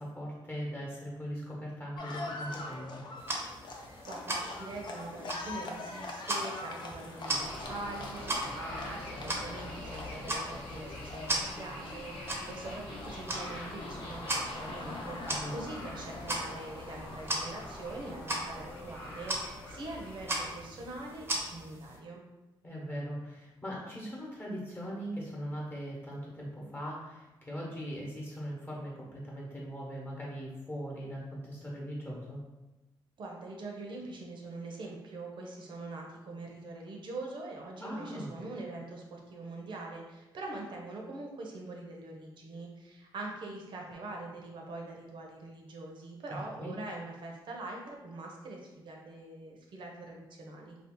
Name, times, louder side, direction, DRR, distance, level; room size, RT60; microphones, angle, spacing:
voice 1, 0.0-3.1 15.2-15.5 22.6-32.4 37.8-38.3 46.3-46.7, equal, 25° left, -4 dB, 1.0 m, -40 dB
Livestock farm animals working animals, 1.9-18.8, left 2 dB, 60° left, 0.5 m, -44 dB
sound 1, 3.2-22.0, right 1 dB, 25° right, 0.7 m, -39 dB
voice 2, 3.7-22.2 33.2-50.8, right 2 dB, 60° right, 0 dB, 0.8 m, -43 dB
sound 2, 7.2-21.6, left 1 dB, 85° left, 0.9 m, -45 dB
2.7 x 2.4 x 3.7 m, 1.1 s
cardioid pair, 85°, 9 cm